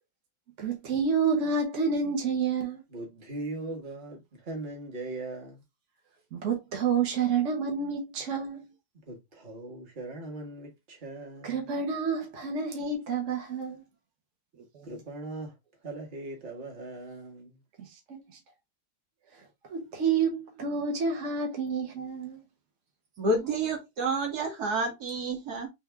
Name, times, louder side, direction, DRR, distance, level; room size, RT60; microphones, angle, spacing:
voice 1, 0.6-2.8 6.3-8.7 11.4-13.8 18.1-18.2 19.7-22.4, right 5 dB, 55° right, 1.4 m, -29 dB
voice 2, 2.9-5.6 9.0-11.7 14.8-15.5 15.8-17.6, right 2 dB, 35° right, 1.3 m, -40 dB
voice 3, 23.2-25.7, right 2 dB, 85° right, 2.1 m, -29 dB
3.5 x 3.4 x 3.3 m
omnidirectional pair, 1.6 m